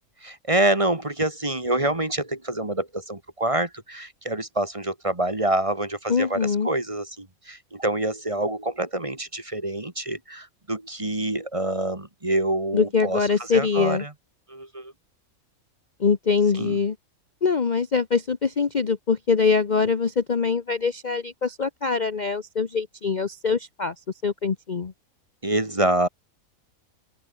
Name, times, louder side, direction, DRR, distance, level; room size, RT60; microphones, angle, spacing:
voice 1, 0.3-14.1 14.5-14.9 16.6-16.8 25.4-26.1, right 1 dB, 20° right, 2.1 m, -26 dB
voice 2, 6.1-6.7 12.7-14.0 16.0-16.9 17.4-23.9 24.2-24.9, left 5 dB, 35° left, 0.9 m, -23 dB
open air
omnidirectional pair, 1.5 m